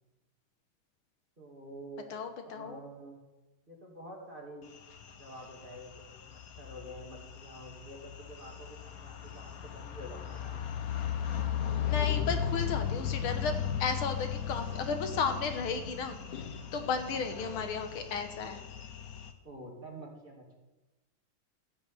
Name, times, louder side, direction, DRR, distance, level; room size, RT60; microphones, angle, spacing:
voice 1, 1.4-2.2 2.4-3.2 3.7-4.7 5.1-10.6 16.9-17.2 19.4-20.6, right 1 dB, 25° right, -2 dB, 2.7 m, -48 dB
voice 2, 2.1-2.8 11.8-13.5 13.8-16.2 16.7-18.6, left 5 dB, 85° left, 7 dB, 2.0 m, -34 dB
sound 1, 4.7-19.3, left 8 dB, 55° left, 1.2 m, -37 dB
14.5 x 5.4 x 8.9 m, 1.1 s
omnidirectional pair, 2.3 m